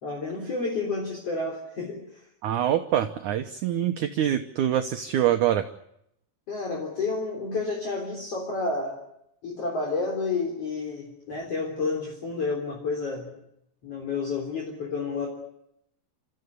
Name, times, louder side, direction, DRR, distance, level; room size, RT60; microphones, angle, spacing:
voice 1, 0.0-2.3 6.5-9.0 9.4-13.4 13.8-15.3, left 3 dB, 40° left, -1 dB, 4.6 m, -30 dB
voice 2, 2.4-5.7, right 11 dB, 70° right, 7 dB, 2.0 m, -25 dB
29.5 x 14.5 x 9.6 m, 0.78 s
omnidirectional pair, 4.5 m